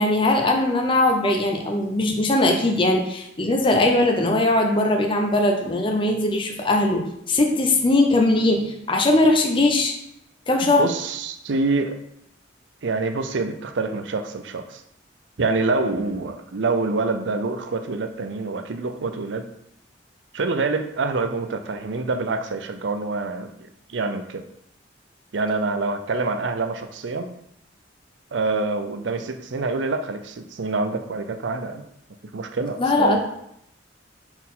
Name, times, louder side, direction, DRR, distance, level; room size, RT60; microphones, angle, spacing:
voice 1, 0.0-9.9 10.5-10.9 32.8-33.2, left 2 dB, 25° left, 2 dB, 0.6 m, -20 dB
voice 2, 10.8-12.0 12.8-14.8 15.4-19.5 20.3-23.5 23.9-24.4 25.3-27.3 28.3-31.8 32.3-33.2, right 3 dB, 75° right, 7 dB, 0.6 m, -26 dB
4.4 x 4.1 x 5.5 m, 0.76 s
head